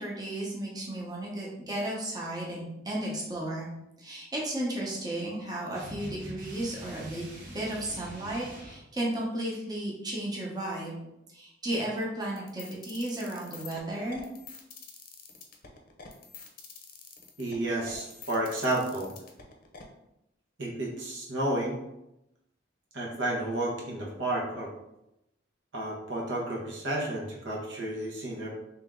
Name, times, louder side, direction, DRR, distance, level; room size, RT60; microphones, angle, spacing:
voice 1, 0.0-3.7 4.0-7.2 7.5-11.0 11.3-14.2, right 1 dB, 20° right, -4 dB, 0.9 m, -34 dB
sound 1, 5.8-8.8, right 1 dB, 55° right, 1.1 m, -44 dB
sound 2, 12.4-19.8, left 5 dB, 50° left, 0.6 m, -46 dB
voice 2, 17.4-19.1 20.6-21.8 22.9-24.7 25.7-28.5, right 1 dB, 85° right, -4 dB, 1.1 m, -31 dB
3.5 x 2.9 x 3.7 m, 0.87 s
head